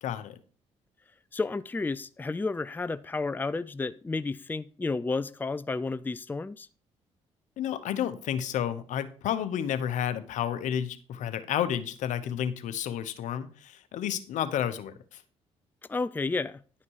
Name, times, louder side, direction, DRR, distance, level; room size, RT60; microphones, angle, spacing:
voice 1, 0.0-0.4 7.6-15.2, left 10 dB, 75° left, 1.0 m, -31 dB
voice 2, 1.3-6.7 15.9-16.6, left 3 dB, 15° left, 0.4 m, -31 dB
11.0 x 5.8 x 4.8 m
supercardioid pair, 70°, 13 cm